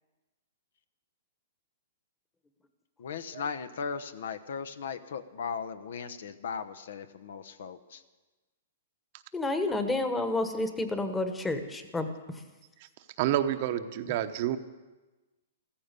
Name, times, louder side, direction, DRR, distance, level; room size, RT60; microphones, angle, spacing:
voice 1, 3.0-8.0, left 6 dB, 75° left, 12 dB, 1.0 m, -37 dB
voice 2, 9.3-12.1, left 2 dB, 10° left, 8 dB, 1.3 m, -30 dB
voice 3, 13.2-14.6, right 11 dB, 45° right, 9 dB, 0.9 m, -29 dB
14.5 x 14.5 x 6.8 m, 1.2 s
hypercardioid pair, 150°, 0 cm